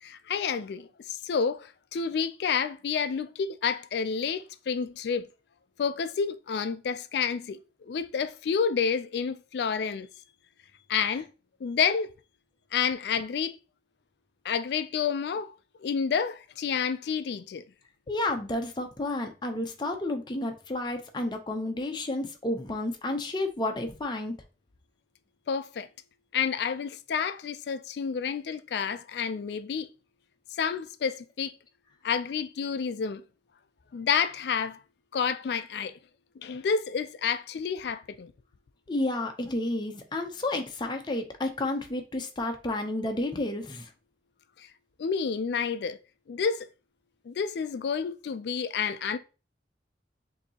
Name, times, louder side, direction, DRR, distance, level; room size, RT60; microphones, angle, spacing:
voice 1, 0.0-5.3 5.8-7.6 7.9-10.1 10.9-11.3 11.6-12.1 12.7-13.6 14.4-17.6 25.5-25.9 26.3-29.9 30.5-31.5 32.0-33.2 33.9-34.8 35.1-36.0 36.4-38.3 44.6-44.7 45.0-46.0 46.3-46.7 47.3-49.2, left 6 dB, 65° left, 0.3 m, -29 dB
voice 2, 18.1-24.3 38.9-43.9, left 2 dB, 25° left, 0.6 m, -31 dB
6.5 x 2.8 x 2.8 m
head